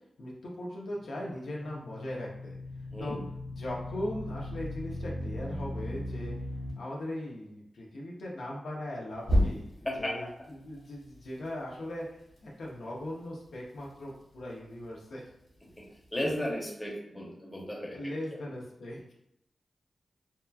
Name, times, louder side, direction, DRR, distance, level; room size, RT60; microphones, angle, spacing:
voice 1, 0.2-2.6 3.0-3.2 3.5-6.3 6.7-9.7 10.0-15.2 17.9-19.1, left 1 dB, 85° left, -4 dB, 0.7 m, -39 dB
sound 1, 0.9-6.7 9.2-10.0, equal, 55° left, 1.4 m, -34 dB
voice 2, 2.9-3.2 9.8-10.3 15.8-15.9 16.1-18.0, left 1 dB, 15° left, -2 dB, 0.8 m, -34 dB
2.8 x 2.3 x 2.3 m, 0.80 s
wide cardioid pair, 90°, 0 cm